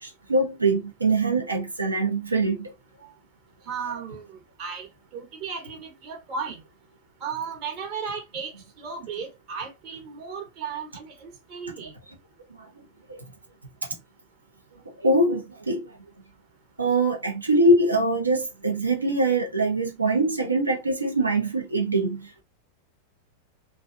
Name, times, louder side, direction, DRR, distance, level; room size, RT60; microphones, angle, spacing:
voice 1, 0.0-2.7 12.6-12.7 13.1-13.2 14.8-15.8 16.8-22.4, right 2 dB, 80° right, 0.7 m, -23 dB
voice 2, 3.7-6.6 7.2-8.5 8.8-11.9, right 6 dB, 40° right, 0.9 m, -35 dB
2.5 x 2.2 x 2.4 m
figure-of-eight pair, 90°, 0 cm